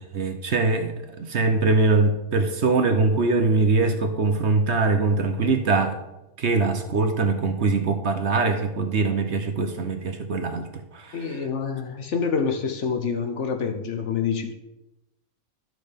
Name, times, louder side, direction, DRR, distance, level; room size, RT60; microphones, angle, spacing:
voice 1, 0.1-6.0 6.4-11.4, right 3 dB, 55° right, 6 dB, 1.1 m, -22 dB
voice 2, 11.1-14.5, left 6 dB, 55° left, 6 dB, 1.1 m, -27 dB
11.5 x 6.4 x 5.1 m, 0.96 s
omnidirectional pair, 1.5 m